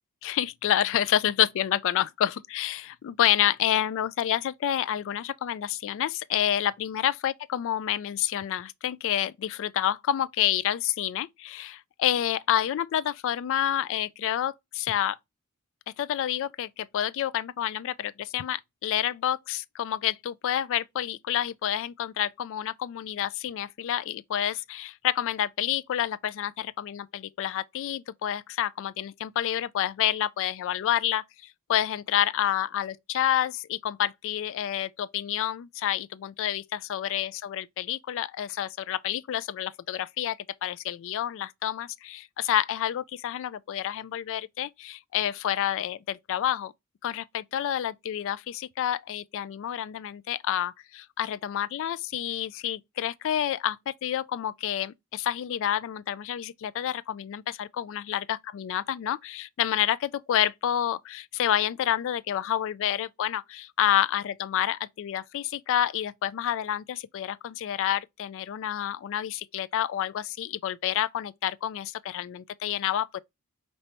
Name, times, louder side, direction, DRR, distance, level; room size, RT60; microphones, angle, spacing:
voice 1, 0.2-15.2 16.0-31.2 31.7-46.7 47.0-73.2, left 11 dB, 60° left, 0.3 m, -29 dB
5.3 x 3.2 x 2.9 m
head